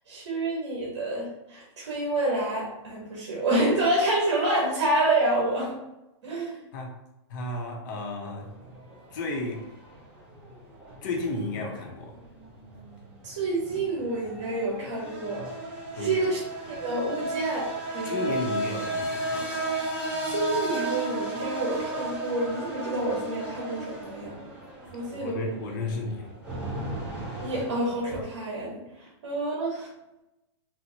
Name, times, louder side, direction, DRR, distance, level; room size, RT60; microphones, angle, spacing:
voice 1, 0.1-5.8 6.2-6.6 13.2-15.5 15.9-16.4 16.7-18.3 20.2-24.3 24.9-25.5 27.4-28.8 29.2-29.9, right 2 dB, 65° right, -4 dB, 1.1 m, -28 dB
voice 2, 7.3-8.5 9.1-9.7 11.0-12.1 16.0-16.3 18.1-19.5 25.1-26.3, left 2 dB, 45° left, 2 dB, 0.7 m, -33 dB
sound 1, 8.4-28.2, right 2 dB, 10° right, 0.7 m, -35 dB
4.3 x 2.1 x 2.7 m, 0.93 s
hypercardioid pair, 160°, 15 cm